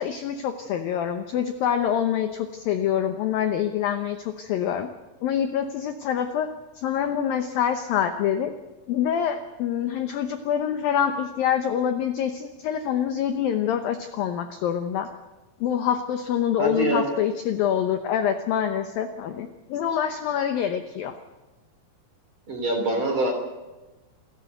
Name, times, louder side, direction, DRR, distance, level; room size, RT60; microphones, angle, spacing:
voice 1, 0.0-4.9 5.2-6.5 6.8-8.5 8.9-15.1 15.6-21.2, left 9 dB, 80° left, 8 dB, 2.0 m, -26 dB
voice 2, 16.6-17.1 22.5-23.3, right 2 dB, 30° right, 4 dB, 3.2 m, -24 dB
28.0 x 14.0 x 7.9 m, 1.1 s
omnidirectional pair, 5.5 m